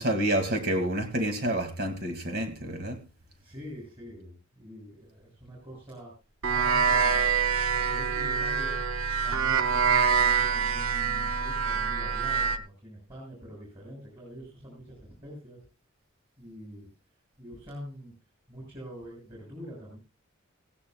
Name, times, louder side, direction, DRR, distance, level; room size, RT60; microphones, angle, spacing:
voice 1, 0.0-3.0, right 1 dB, 50° right, 2.3 m, -28 dB
voice 2, 3.4-6.1 6.5-7.3 7.7-8.8 9.2-15.6 16.4-16.9 17.4-18.1 18.5-20.0, equal, 25° right, 6.7 m, -45 dB
sound 1, 6.4-12.6, right 6 dB, 85° right, 0.9 m, -25 dB
17.0 x 16.5 x 2.3 m
head